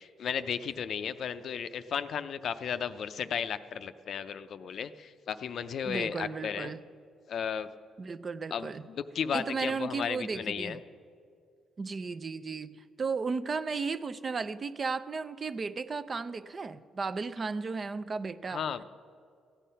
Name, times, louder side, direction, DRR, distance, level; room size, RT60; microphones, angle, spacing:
voice 1, 0.0-6.7 7.3-7.7 8.5-10.8 18.5-18.8, left 7 dB, 60° left, 11 dB, 0.5 m, -34 dB
voice 2, 5.8-6.8 8.0-8.8 9.3-10.8 11.8-18.6, right 4 dB, 35° right, 13 dB, 0.5 m, -34 dB
15.0 x 9.1 x 5.6 m, 2.3 s
cardioid pair, 90°, 0 cm